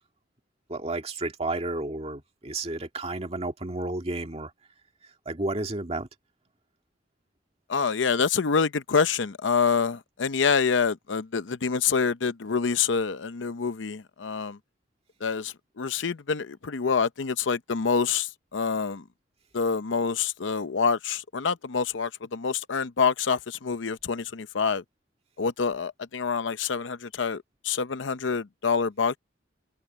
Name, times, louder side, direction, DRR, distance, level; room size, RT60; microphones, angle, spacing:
voice 1, 0.7-4.5 5.3-6.1, right 2 dB, 35° right, 2.2 m, -31 dB
voice 2, 7.7-14.6 15.2-19.0 19.5-24.8 25.4-29.2, left 5 dB, 80° left, 0.7 m, -26 dB
head